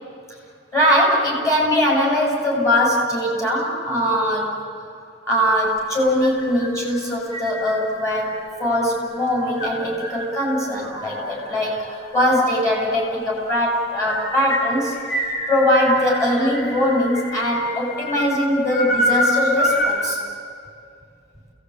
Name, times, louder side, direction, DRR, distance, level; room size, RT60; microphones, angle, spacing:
voice 1, 0.7-4.6 5.3-20.2, equal, 15° left, -3 dB, 7.4 m, -21 dB
sound 1, 5.6-20.1, equal, 45° left, 5.1 m, -28 dB
30.0 x 19.0 x 9.0 m, 2.5 s
head